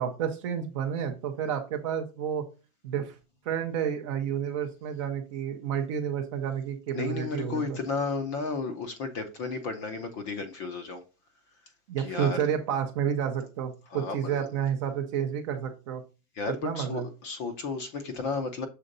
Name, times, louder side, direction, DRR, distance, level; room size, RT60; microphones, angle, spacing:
voice 1, 0.0-2.4 2.8-3.1 3.5-7.8 11.9-16.0 16.6-17.0, right 8 dB, 25° right, 0.5 m, -30 dB
voice 2, 6.9-11.0 12.0-12.4 13.9-14.5 16.4-18.7, left 4 dB, 20° left, 0.5 m, -33 dB
6.6 x 3.8 x 3.8 m
supercardioid pair, 170°, 41 cm